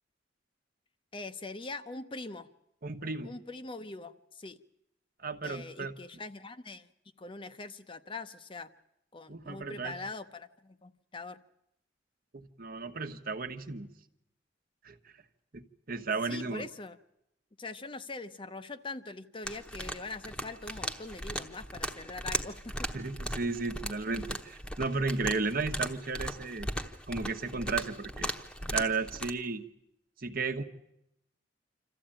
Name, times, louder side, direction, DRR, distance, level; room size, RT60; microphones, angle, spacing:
voice 1, 1.1-2.5 3.2-4.6 5.4-6.9 7.2-8.7 9.1-11.4 16.2-17.0 17.6-22.9, left 3 dB, 30° left, 10 dB, 0.7 m, -42 dB
voice 2, 2.8-3.3 5.2-5.9 9.3-9.9 12.3-13.9 14.8-15.0 15.5-15.6 15.9-16.7 22.9-26.7 27.1-28.3 28.7-29.6 30.2-30.6, right 4 dB, 55° right, 7 dB, 1.2 m, -34 dB
sound 1, 19.4-29.3, equal, 5° left, 1.0 m, -38 dB
26.5 x 14.0 x 8.9 m, 0.82 s
head